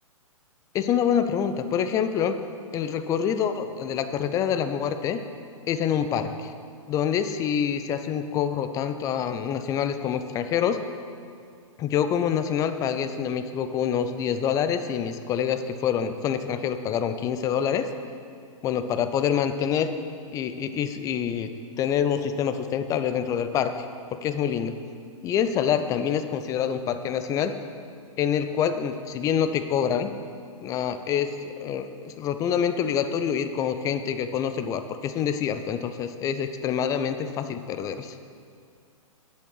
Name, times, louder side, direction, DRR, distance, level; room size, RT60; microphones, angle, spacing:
voice 1, 0.7-2.3 2.7-5.2 5.7-6.5 6.9-10.8 11.8-17.9 18.6-19.9 20.3-21.5 21.8-24.8 25.2-27.5 28.2-30.1 30.6-38.1, left 8 dB, 20° left, 9 dB, 0.4 m, -26 dB
7.5 x 7.3 x 5.7 m, 2.3 s
figure-of-eight pair, 115°, 18 cm